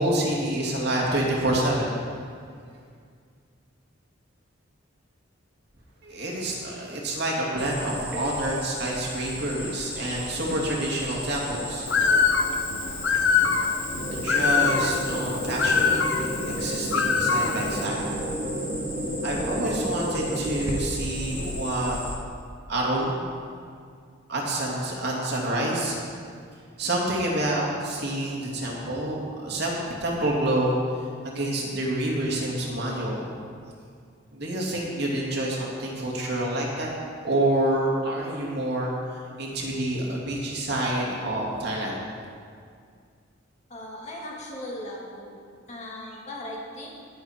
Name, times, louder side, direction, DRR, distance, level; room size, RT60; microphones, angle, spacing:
voice 1, 0.0-1.9 6.0-11.9 14.1-18.0 19.2-22.0 22.7-23.3 24.3-26.1 26.8-30.7 31.2-33.4 34.3-36.9 37.2-42.0, right 1 dB, 55° right, -3 dB, 2.6 m, -28 dB
Cricket, 7.6-22.1, equal, 10° right, 1.9 m, -36 dB
Bird, 11.9-17.9, left 5 dB, 60° left, 0.7 m, -24 dB
sound 1, 14.0-20.8, right 1 dB, 30° right, 1.3 m, -32 dB
voice 2, 43.7-45.4 45.7-46.9, left 1 dB, 35° left, -4 dB, 2.3 m, -38 dB
19.5 x 8.0 x 4.5 m, 2.2 s
head